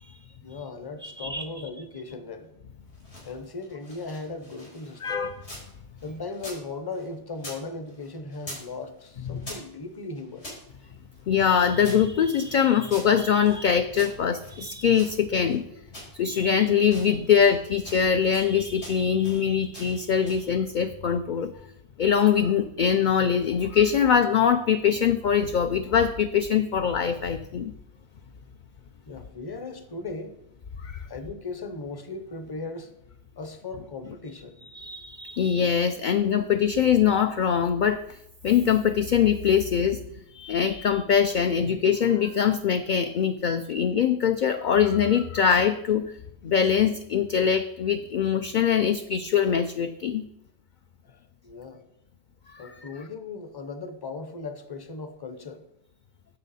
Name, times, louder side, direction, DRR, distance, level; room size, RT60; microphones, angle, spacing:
voice 1, 0.4-2.5 3.2-5.2 6.0-10.5 29.1-30.4 31.1-32.9 33.4-34.6 51.0-51.8 52.6-55.6, left 3 dB, 25° left, 8 dB, 0.7 m, -37 dB
voice 2, 1.0-1.4 5.0-5.4 11.3-15.6 16.1-21.5 22.0-27.7 30.8-31.0 34.6-38.0 38.4-40.0 40.3-46.1 46.4-50.2 52.5-52.7, left 8 dB, 55° left, 8 dB, 0.5 m, -23 dB
sound 1, 2.8-5.7 6.0-7.6 7.9-8.7 9.0-10.6 11.1-13.6 13.9-15.6 15.9-16.5 16.8-17.6 17.8-18.5 18.8-19.4 19.7-20.5, equal, 85° left, 4.5 m, -45 dB
9.7 x 7.3 x 4.1 m, 0.80 s
omnidirectional pair, 1.1 m